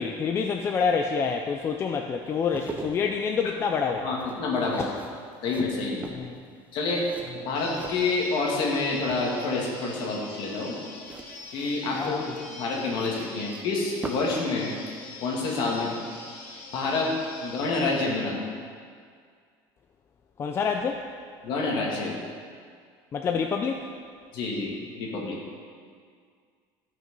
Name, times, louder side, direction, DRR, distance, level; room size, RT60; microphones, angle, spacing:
voice 1, 0.0-4.2 4.8-4.9 6.1-6.4 11.9-12.2 20.4-21.0 23.1-23.9, left 5 dB, 25° left, 4 dB, 0.4 m, -27 dB
sound 1, 2.3-8.7 9.0-9.6 11.0-14.4 14.7-14.9, right 3 dB, 15° right, 0.7 m, -42 dB
voice 2, 4.0-5.0 5.4-6.1 6.7-7.0 7.4-10.8 11.5-12.2 12.5-14.7 15.2-15.9 16.7-17.1 17.4-18.5 21.4-22.2 24.3-25.4, left 3 dB, 50° left, -2 dB, 2.2 m, -28 dB
sound 2, 7.5-18.2, left 3 dB, 85° left, 2.6 m, -44 dB
13.5 x 6.2 x 5.3 m, 2.1 s
cardioid pair, 160°, 10 cm